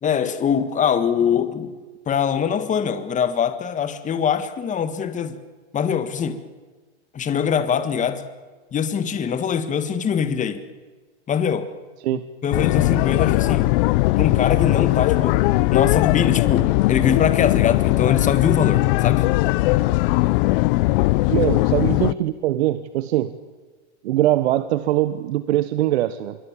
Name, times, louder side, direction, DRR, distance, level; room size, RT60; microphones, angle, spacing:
voice 1, 0.0-1.7 2.1-5.4 5.7-6.4 7.1-8.2 8.7-10.6 11.3-11.7 12.1-13.7 14.2-15.4 15.7-19.3 21.4-21.5, left 7 dB, 20° left, 10 dB, 1.7 m, -23 dB
sound 1, 12.5-22.1, left 20 dB, 50° left, 0.7 m, -19 dB
voice 2, 21.3-23.3 24.0-26.4, right 14 dB, 65° right, 12 dB, 1.2 m, -22 dB
25.5 x 23.5 x 7.4 m, 1.3 s
hypercardioid pair, 115°, 34 cm